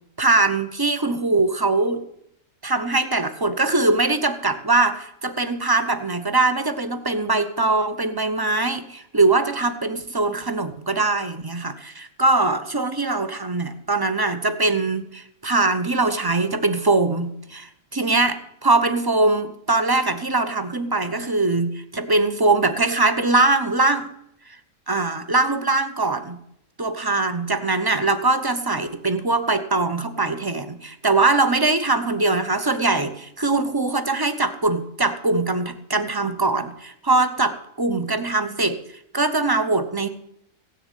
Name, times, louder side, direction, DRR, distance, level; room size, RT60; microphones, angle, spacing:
voice 1, 0.2-2.0 2.6-24.1 24.9-26.4 26.8-38.8 39.1-40.1, right 3 dB, 20° right, 10 dB, 0.7 m, -22 dB
16.5 x 6.8 x 9.1 m, 0.76 s
omnidirectional pair, 1.6 m